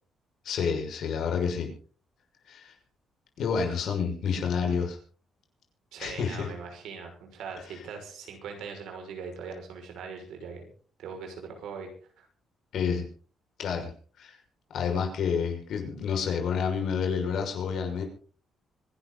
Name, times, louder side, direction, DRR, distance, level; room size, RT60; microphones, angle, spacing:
voice 1, 0.4-1.7 2.5-2.7 3.4-5.0 6.0-6.5 12.7-13.1 13.6-13.9 14.2-14.3 14.7-18.0, left 6 dB, 65° left, 3 dB, 6.1 m, -29 dB
voice 2, 5.9-10.7 11.0-11.9 12.2-12.3, right 5 dB, 85° right, 4 dB, 6.1 m, -41 dB
25.5 x 12.0 x 4.1 m, 0.42 s
cardioid pair, 145°, 0 cm